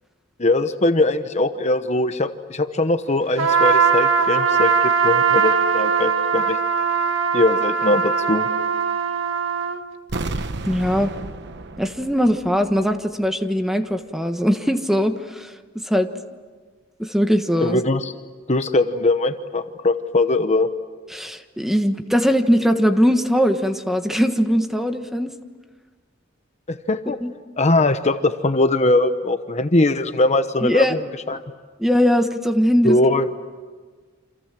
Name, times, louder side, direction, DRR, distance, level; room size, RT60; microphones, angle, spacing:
voice 1, 0.4-6.6 7.3-8.5 17.6-18.1 18.5-20.7 26.7-27.2 27.6-31.4 32.8-33.3, left 2 dB, 35° left, 9 dB, 1.0 m, -21 dB
Trumpet, 3.4-9.8, right 6 dB, 85° right, 1.7 m, -20 dB
sound 1, 10.1-13.0 13.2-13.3, right 2 dB, 60° right, 1.1 m, -32 dB
voice 2, 10.6-11.1 11.8-15.5 15.8-16.1 17.0-17.8 21.1-25.3 27.2-27.3 30.6-31.0 31.8-33.0, equal, ahead, 7 dB, 1.3 m, -20 dB
29.0 x 27.0 x 7.6 m, 1.5 s
head